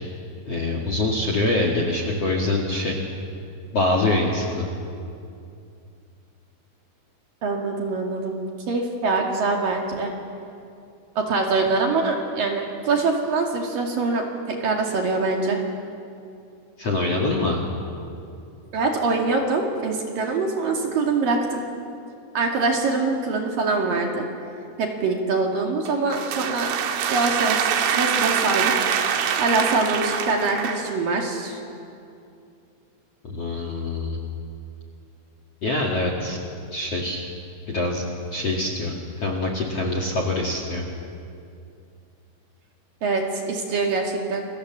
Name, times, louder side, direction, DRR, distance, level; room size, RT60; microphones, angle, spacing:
voice 1, 0.5-3.0 3.7-4.7 16.8-17.6 33.2-34.2 35.6-36.4 36.7-37.2 37.7-38.0 38.3-40.8, left 2 dB, 45° left, 2 dB, 2.3 m, -24 dB
voice 2, 7.4-8.4 8.7-10.1 11.2-14.2 14.5-15.6 18.7-21.6 22.4-24.2 24.8-26.7 27.1-27.6 27.9-28.8 29.4-31.6 43.0-44.5, right 3 dB, 55° right, 1 dB, 3.4 m, -24 dB
sound 1, 25.9-31.0, right 8 dB, 85° right, 4.1 m, -24 dB
28.5 x 24.5 x 7.4 m, 2.5 s
omnidirectional pair, 5.6 m